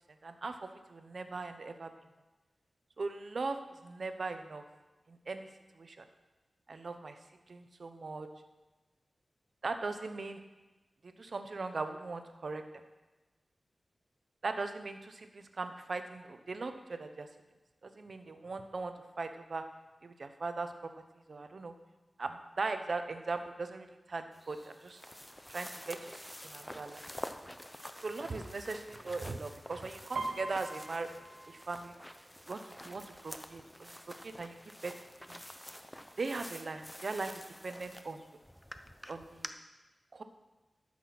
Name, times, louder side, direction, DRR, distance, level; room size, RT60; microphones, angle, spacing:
voice 1, 0.2-1.9 3.0-4.6 5.1-5.5 5.7-6.1 6.7-7.2 7.5-8.3 9.6-10.4 11.0-12.6 14.4-17.3 17.8-19.6 20.0-20.9 21.3-21.7 22.2-25.0 25.5-27.0 28.0-31.1 31.5-32.0 32.5-34.0 34.2-34.6 34.8-34.9 35.3-35.4 36.2-38.2 39.1-39.5 40.1-40.2, right 3 dB, 60° right, 8 dB, 0.9 m, -39 dB
sound 1, 24.3-39.5, equal, 5° left, 0.7 m, -48 dB
Piano, 30.1-33.8 34.1-34.6 34.9-35.5 36.1-36.2 36.5-37.5 37.9-38.0, right 2 dB, 90° right, 0.9 m, -44 dB
12.5 x 6.1 x 6.0 m, 1.2 s
wide cardioid pair, 65°, 0 cm